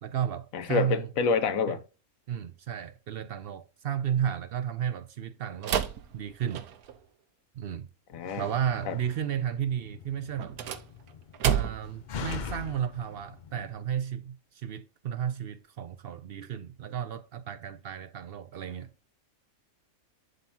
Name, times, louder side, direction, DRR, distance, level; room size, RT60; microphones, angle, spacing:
voice 1, 0.0-1.1 1.7-1.8 2.3-5.9 6.1-6.7 7.5-7.9 8.4-10.6 11.4-18.9, right 9 dB, 70° right, 0.5 m, -33 dB
voice 2, 0.5-1.8 8.1-8.4 8.9-9.0, left 5 dB, 70° left, 1.3 m, -27 dB
sound 1, 5.6-7.0 10.4-12.0, right 9 dB, 90° right, 1.3 m, -30 dB
Slam, 8.1-13.7, left 6 dB, 55° left, 0.5 m, -43 dB
11.0 x 3.8 x 2.7 m
omnidirectional pair, 1.5 m